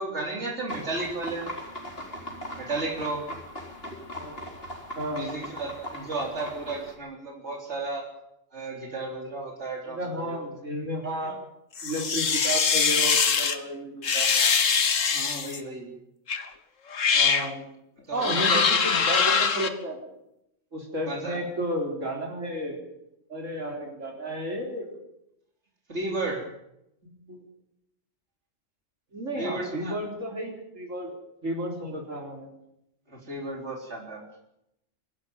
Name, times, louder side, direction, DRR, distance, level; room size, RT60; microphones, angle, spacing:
voice 1, 0.0-1.5 2.6-3.2 5.1-8.1 8.5-10.5 11.2-11.3 15.1-15.9 18.1-19.1 21.1-21.4 25.9-26.5 29.3-30.0 33.1-34.2, right 2 dB, 60° right, 0 dB, 4.0 m, -33 dB
sound 1, 0.7-6.9, equal, 50° left, 4.3 m, -39 dB
voice 2, 9.8-11.4 11.8-14.4 17.1-17.6 18.1-20.0 20.7-22.9 23.3-24.9 27.0-27.4 29.1-32.5, right 1 dB, 85° right, 1 dB, 4.4 m, -33 dB
sound 2, 11.8-13.6 14.0-15.6 16.3-16.4 16.9-17.5 18.2-19.7, left 6 dB, 85° left, 1.8 m, -23 dB
24.0 x 12.0 x 9.3 m, 0.81 s
omnidirectional pair, 1.3 m